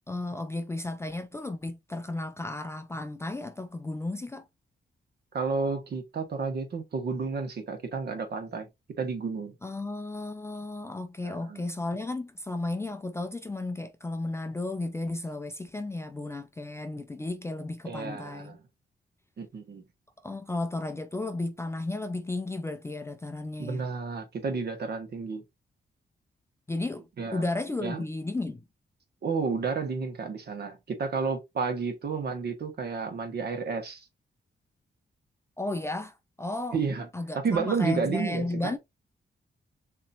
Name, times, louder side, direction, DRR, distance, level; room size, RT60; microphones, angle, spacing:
voice 1, 0.1-4.5 9.6-18.6 20.2-23.8 26.7-27.1 27.3-28.6 35.6-36.8 37.1-38.8, left 2 dB, 15° left, 0.4 m, -34 dB
voice 2, 5.3-8.7 9.0-9.5 11.2-11.6 17.9-18.6 19.4-19.9 23.6-25.4 27.2-27.4 27.8-28.0 29.2-34.1 36.7-37.1 37.3-38.7, right 5 dB, 60° right, 1.3 m, -31 dB
6.9 x 3.0 x 2.5 m
wide cardioid pair, 175°, 19 cm